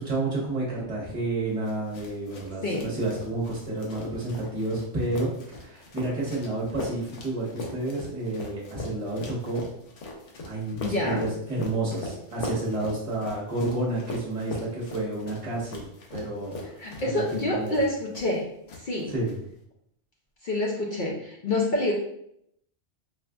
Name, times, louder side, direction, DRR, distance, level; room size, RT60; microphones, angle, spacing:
voice 1, 0.0-9.6 10.4-17.8 19.1-19.3, right 2 dB, 30° right, -4 dB, 1.0 m, -30 dB
sound 1, 1.6-18.4 18.7-19.3, left 2 dB, 90° left, 1.0 m, -40 dB
voice 2, 10.8-11.3 16.8-18.4 18.8-19.1 20.4-21.9, left 1 dB, 55° left, -2 dB, 0.6 m, -27 dB
4.2 x 2.4 x 2.3 m, 0.74 s
omnidirectional pair, 1.2 m